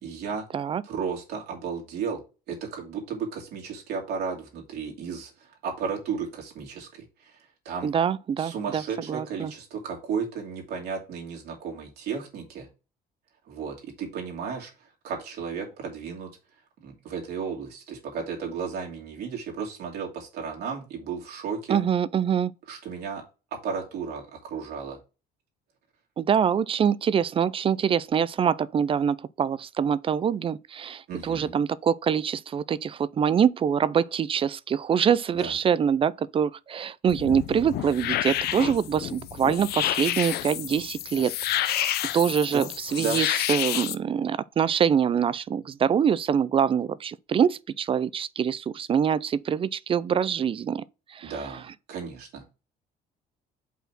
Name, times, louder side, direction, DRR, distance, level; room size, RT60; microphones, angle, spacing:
voice 1, 0.0-0.5 0.8-2.2 2.5-5.3 5.6-7.3 7.6-7.9 8.4-12.7 13.5-14.7 15.0-16.3 16.8-21.8 22.7-23.2 23.5-25.0 31.1-31.5 35.4-35.5 42.5-42.7 43.0-43.2 51.2-52.4, right 6 dB, 70° right, 2.7 m, -34 dB
voice 2, 7.8-9.5 21.7-22.5 26.2-41.3 41.6-50.8 51.1-51.3, right 7 dB, 35° right, 0.4 m, -25 dB
sound 1, 37.1-43.9, left 13 dB, 70° left, 0.6 m, -29 dB
5.5 x 4.2 x 5.9 m
cardioid pair, 110°, 17 cm